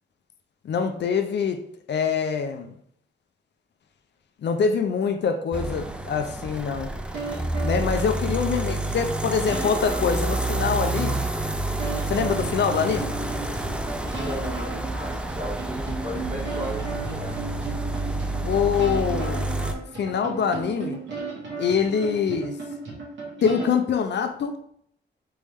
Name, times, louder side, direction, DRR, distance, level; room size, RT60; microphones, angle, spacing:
voice 1, 0.6-2.7 4.4-6.9 7.6-11.2 12.1-13.1 18.4-19.5 20.0-21.0 21.6-22.5 23.4-24.5, left 6 dB, 65° left, 8 dB, 0.5 m, -24 dB
sound 1, 5.5-19.7, right 2 dB, 5° right, 0.3 m, -29 dB
sound 2, 7.1-8.5 8.9-9.0 9.5-10.9 11.2-11.3 11.8-23.7, right 3 dB, 80° right, 1.8 m, -35 dB
voice 2, 14.1-17.4, equal, 40° right, -4 dB, 1.8 m, -36 dB
4.2 x 3.4 x 3.5 m, 0.66 s
wide cardioid pair, 140°, 19 cm